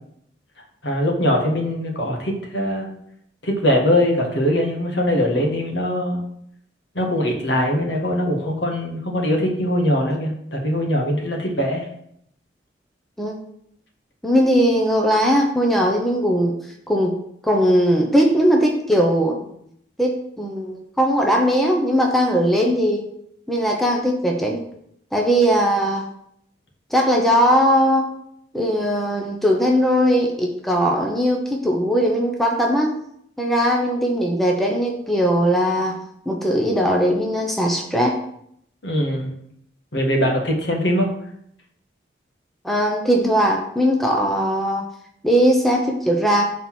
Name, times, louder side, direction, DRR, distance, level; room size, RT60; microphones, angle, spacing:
voice 1, 0.8-2.9 3.4-6.2 7.0-11.9 38.8-39.3 39.9-41.1, equal, 75° left, 1 dB, 1.7 m, -21 dB
voice 2, 14.2-16.6 16.9-17.1 17.4-19.4 20.0-23.0 23.5-24.6 25.1-26.0 26.9-28.1 28.5-32.9 33.4-38.2 42.6-44.8 45.2-46.5, equal, ahead, 0 dB, 0.8 m, -19 dB
6.0 x 4.1 x 6.1 m, 0.71 s
head